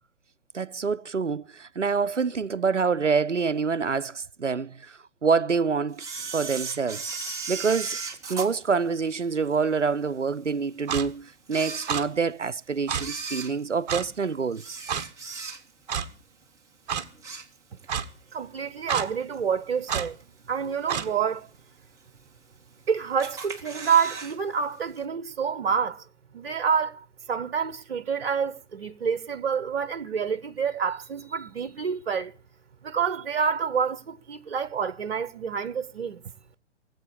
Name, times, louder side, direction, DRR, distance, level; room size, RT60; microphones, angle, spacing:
voice 1, 0.5-6.0 6.3-7.1 7.5-8.0 8.3-14.8, right 5 dB, 90° right, 0.7 m, -26 dB
Camera, 6.0-9.5 10.0-10.1 10.8-10.9 11.4-12.4 12.9-15.9 16.3-16.6 16.9-18.0 18.3-18.4 19.3-19.4 20.0-20.4 20.8-20.9 21.1-21.2 21.4-21.5 22.2-22.8 23.2-24.4 24.6-24.7 25.0-25.1, right 5 dB, 10° right, 1.5 m, -36 dB
Clock, 10.9-11.1 11.9-12.0 12.9-13.0 13.9-14.1 14.9-15.0 15.9-16.1 16.9-17.0 17.9-18.0 18.9-19.1 19.9-20.1 20.9-21.1, right 8 dB, 35° right, 1.5 m, -28 dB
voice 2, 18.3-20.2 20.5-21.5 22.9-26.0 26.3-32.3 32.8-36.2, right 6 dB, 55° right, 1.1 m, -28 dB
18.5 x 8.1 x 8.4 m
figure-of-eight pair, 125°, 35 cm